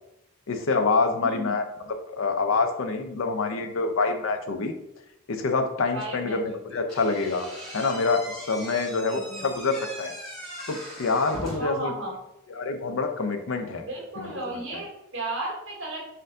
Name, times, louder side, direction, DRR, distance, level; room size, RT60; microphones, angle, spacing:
voice 1, 0.5-1.6 2.1-4.8 5.3-7.5 7.7-10.1 10.7-11.9 12.5-13.8 14.2-14.8, left 4 dB, 75° left, 7 dB, 0.5 m, -26 dB
voice 2, 1.2-1.6 5.9-6.8 9.1-9.5 11.6-12.1 13.8-16.1, right 2 dB, 65° right, -3 dB, 1.5 m, -35 dB
Slam / Squeak, 6.9-11.9, equal, ahead, 1.2 m, -39 dB
4.3 x 2.6 x 3.6 m, 0.86 s
head